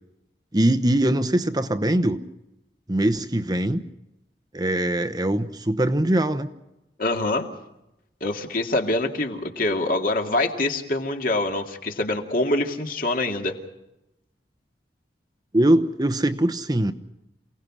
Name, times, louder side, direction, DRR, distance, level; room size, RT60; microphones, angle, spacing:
voice 1, 0.5-2.2 2.9-3.8 4.5-6.5 15.5-16.9, right 1 dB, 20° right, 9 dB, 0.9 m, -22 dB
voice 2, 7.0-7.5 8.2-13.6, left 2 dB, 50° left, 3 dB, 2.4 m, -25 dB
28.5 x 18.5 x 6.2 m, 0.89 s
head